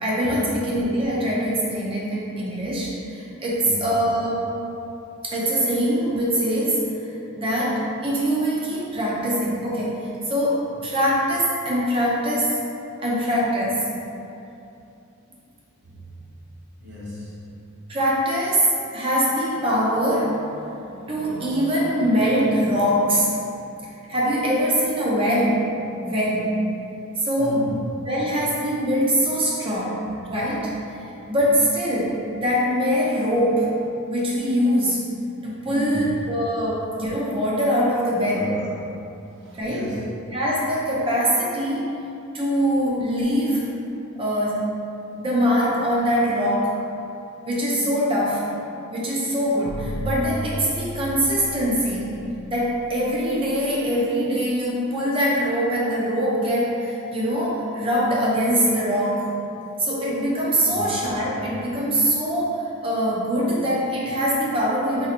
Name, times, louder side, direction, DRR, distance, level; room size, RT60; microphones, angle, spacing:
voice 1, 0.0-4.5 5.2-12.6 13.0-13.9 17.9-23.3 24.1-25.7 26.0-26.6 27.2-27.7 28.1-30.7 31.0-33.7 34.1-35.0 35.4-38.5 39.5-39.9 40.3-41.9 42.3-43.7 44.2-44.8 45.2-46.8 47.5-48.5 48.9-52.3 52.5-59.3 59.8-65.1, equal, 25° right, -5 dB, 0.5 m, -23 dB
voice 2, 3.5-3.9 15.8-16.0 16.8-17.4 27.4-28.1 31.2-31.3 35.7-36.3 38.2-38.9 39.4-40.2 60.6-60.9, left 1 dB, 50° right, -7 dB, 0.9 m, -34 dB
sound 1, 49.6-53.7, equal, 55° left, 0.6 m, -34 dB
4.1 x 2.7 x 2.5 m, 2.7 s
head